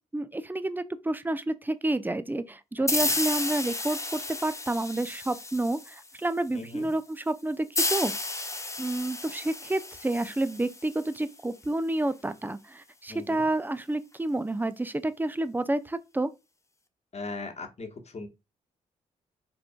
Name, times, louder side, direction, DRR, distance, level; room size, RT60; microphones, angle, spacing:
voice 1, 0.1-8.1 8.8-16.3, right 2 dB, 10° right, 0.6 m, -29 dB
sound 1, 2.9-6.3 7.7-11.2, left 2 dB, 15° left, 0.8 m, -32 dB
voice 2, 6.5-6.9 13.1-13.5 17.1-18.3, left 3 dB, 40° left, 1.3 m, -39 dB
5.8 x 3.7 x 2.3 m
hypercardioid pair, 40°, 17 cm